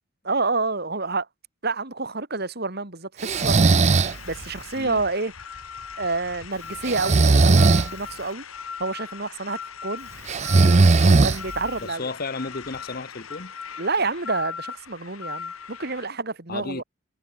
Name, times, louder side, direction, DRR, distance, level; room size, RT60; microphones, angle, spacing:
voice 1, 0.2-1.3 1.6-3.7 4.3-5.3 6.0-8.4 8.8-10.1 10.6-12.1 13.8-16.8, right 3 dB, 50° right, 2.4 m, -28 dB
Breathing, 3.2-4.2 6.8-7.9 10.3-11.7, right 3 dB, 30° right, 0.5 m, -17 dB
sound 1, 3.3-16.1, left 6 dB, 85° left, 2.2 m, -39 dB
voice 2, 11.8-13.5 16.5-16.8, left 3 dB, 45° left, 1.0 m, -33 dB
head